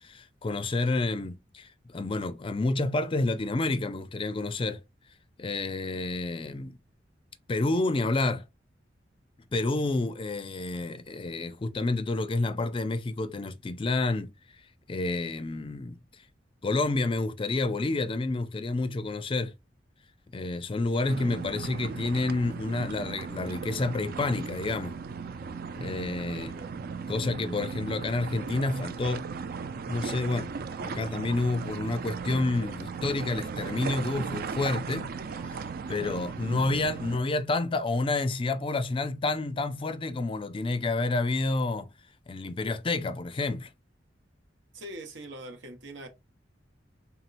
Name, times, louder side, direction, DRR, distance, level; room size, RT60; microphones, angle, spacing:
voice 1, 0.0-4.8 5.4-6.8 7.5-8.4 9.5-14.3 14.9-16.0 16.6-19.5 20.3-25.0 25.8-26.5 27.1-29.2 29.9-30.5 30.8-35.1 35.9-41.9 42.3-43.7, left 2 dB, 30° left, 0.4 m, -29 dB
sound 1, 21.1-37.2, right 5 dB, 55° right, 0.4 m, -37 dB
voice 2, 26.3-26.7 44.7-46.1, right 1 dB, 85° right, 1.1 m, -43 dB
4.4 x 3.6 x 2.5 m
head